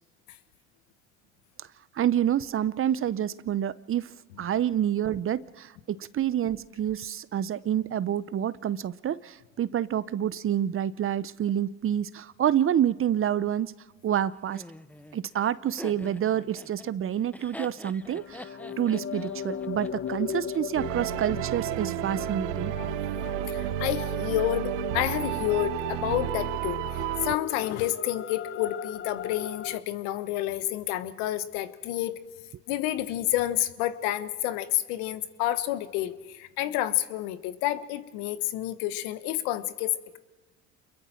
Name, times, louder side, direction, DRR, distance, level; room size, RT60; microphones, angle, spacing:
voice 1, 1.9-13.7 14.0-14.6 15.1-22.7, right 10 dB, 35° right, 18 dB, 0.7 m, -28 dB
Laughter, 14.5-20.6, left 1 dB, 5° left, 0.9 m, -45 dB
sound 1, 18.0-29.8, left 8 dB, 35° left, 1.1 m, -38 dB
sound 2, 20.7-27.4, right 16 dB, 80° right, 0.8 m, -31 dB
voice 2, 23.5-32.2 32.7-40.2, left 14 dB, 75° left, 12 dB, 1.3 m, -29 dB
28.5 x 22.0 x 4.5 m, 1.2 s
hypercardioid pair, 65°, 36 cm